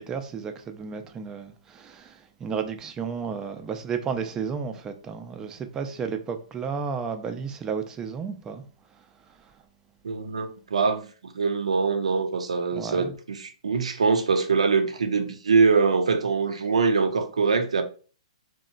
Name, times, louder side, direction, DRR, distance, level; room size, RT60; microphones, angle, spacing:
voice 1, 0.0-8.6 12.7-13.1, right 6 dB, 20° right, 0.3 m, -32 dB
voice 2, 10.0-17.8, right 4 dB, 90° right, 0.4 m, -23 dB
2.9 x 2.1 x 2.4 m
hypercardioid pair, 130°, 3 cm